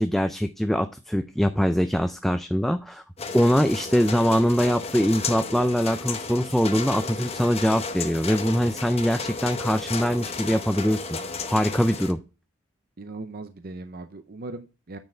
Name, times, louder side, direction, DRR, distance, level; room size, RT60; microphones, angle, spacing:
voice 1, 0.0-3.0 3.3-11.1 11.5-12.2, equal, ahead, 8 dB, 0.3 m, -23 dB
sound 1, 3.2-12.1, left 4 dB, 30° left, 0.8 m, -33 dB
voice 2, 13.0-15.0, right 2 dB, 45° right, 9 dB, 0.6 m, -38 dB
9.6 x 4.5 x 4.4 m, 0.32 s
head